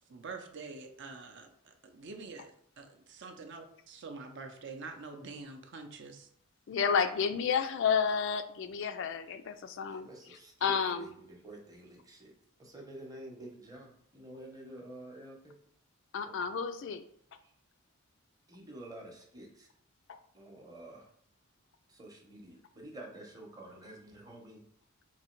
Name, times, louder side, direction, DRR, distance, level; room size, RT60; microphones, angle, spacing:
voice 1, 0.1-6.3, right 4 dB, 50° right, 5 dB, 0.5 m, -46 dB
voice 2, 6.7-10.1 10.6-11.1 16.1-17.0 20.1-20.2, left 6 dB, 55° left, 10 dB, 0.3 m, -31 dB
voice 3, 9.9-12.3 12.6-15.5 16.2-16.4 17.4-17.5 18.5-19.7 20.3-21.1 21.9-24.6, right 1 dB, 15° right, 0 dB, 0.8 m, -49 dB
3.9 x 2.7 x 4.4 m, 0.67 s
head